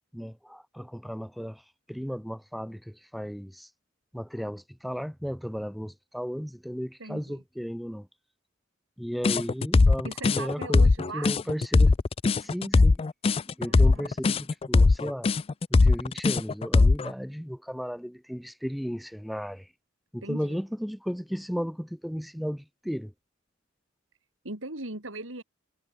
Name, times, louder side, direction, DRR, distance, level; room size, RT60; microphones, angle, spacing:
voice 1, 0.1-3.7 4.1-8.1 9.0-12.0 12.4-13.0 13.5-15.3 15.7-19.7 20.1-23.1, equal, ahead, 2.0 m, -35 dB
voice 2, 7.0-7.4 10.0-11.3 13.6-14.1 20.2-20.6 24.4-25.4, right 2 dB, 85° right, 5.0 m, -39 dB
sound 1, 9.2-17.1, left 3 dB, 30° left, 0.4 m, -20 dB
head